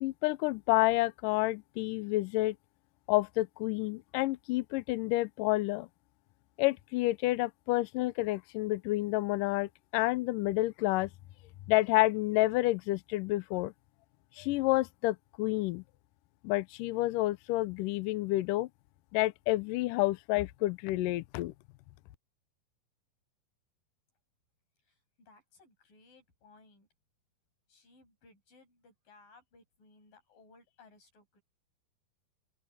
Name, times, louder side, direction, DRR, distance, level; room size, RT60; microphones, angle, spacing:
voice 1, 0.0-2.6 3.1-5.9 6.6-11.1 11.7-13.7 14.4-15.8 16.4-18.7 19.1-21.5, left 19 dB, 85° left, 1.9 m, -29 dB
voice 2, 24.9-26.9 27.7-31.4, left 3 dB, 60° left, 9.4 m, -61 dB
open air
omnidirectional pair, 4.5 m